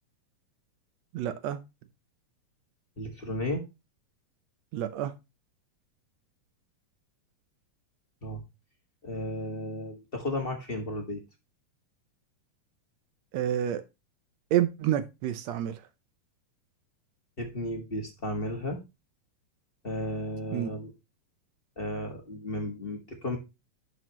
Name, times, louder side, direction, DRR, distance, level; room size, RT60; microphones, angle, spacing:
voice 1, 1.1-1.6 4.7-5.1 13.3-13.8 14.5-15.8 20.5-20.7, right 11 dB, 80° right, 1.5 m, -28 dB
voice 2, 3.0-3.6 8.2-8.4 9.0-11.2 17.4-18.8 19.8-20.9 21.8-23.4, left 1 dB, 35° left, 0.9 m, -34 dB
11.0 x 6.3 x 3.0 m
omnidirectional pair, 4.0 m